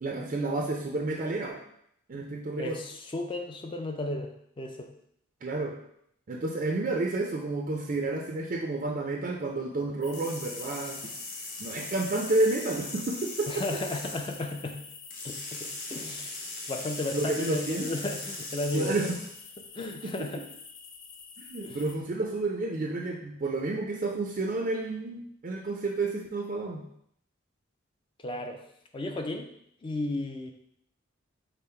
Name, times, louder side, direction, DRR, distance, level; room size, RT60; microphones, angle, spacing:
voice 1, 0.0-1.6 2.1-2.8 5.4-5.7 6.3-11.1 11.6-13.7 17.1-17.9 18.7-19.2 20.0-20.3 21.4-26.8, right 2 dB, 40° right, 0 dB, 0.4 m, -30 dB
voice 2, 2.6-4.3 4.6-4.9 13.5-14.8 15.2-16.4 16.7-19.0 19.7-20.4 21.6-21.8 28.2-28.6 28.9-29.5 29.8-30.5, left 2 dB, 25° left, 4 dB, 0.4 m, -34 dB
sound 1, 10.0-22.0, left 6 dB, 75° left, 0.6 m, -47 dB
sound 2, 10.1-14.4 15.1-19.4, left 2 dB, 40° left, 0.8 m, -40 dB
5.4 x 2.0 x 4.3 m, 0.71 s
head